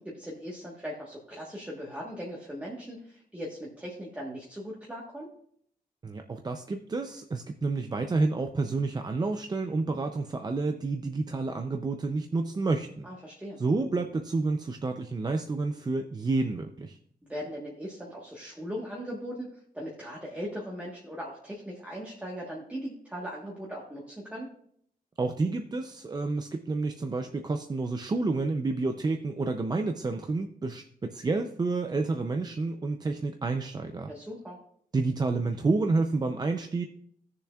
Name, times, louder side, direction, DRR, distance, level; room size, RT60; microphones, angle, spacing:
voice 1, 0.0-5.3 13.0-13.6 17.2-24.5 34.1-34.6, equal, 10° right, -4 dB, 1.3 m, -39 dB
voice 2, 6.0-13.1 13.6-17.0 25.2-34.1 34.9-36.8, right 3 dB, 25° right, 5 dB, 0.5 m, -29 dB
16.5 x 6.8 x 2.3 m, 0.67 s
wide cardioid pair, 170°, 16 cm